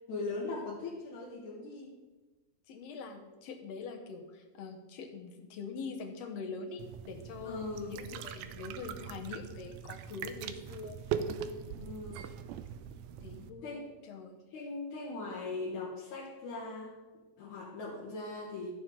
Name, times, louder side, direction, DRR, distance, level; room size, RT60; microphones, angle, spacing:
voice 1, 0.1-2.0 7.4-8.1 11.7-12.2 13.6-13.9 14.5-17.0 17.4-18.7, left 3 dB, 85° left, -4 dB, 2.8 m, -40 dB
voice 2, 2.7-11.3 11.7-11.9 13.2-13.8 14.0-14.4, left 5 dB, 65° left, 4 dB, 2.0 m, -44 dB
sound 1, 6.8-13.5, right 8 dB, 90° right, 2.0 m, -41 dB
15.0 x 7.0 x 3.8 m, 1.2 s
omnidirectional pair, 3.3 m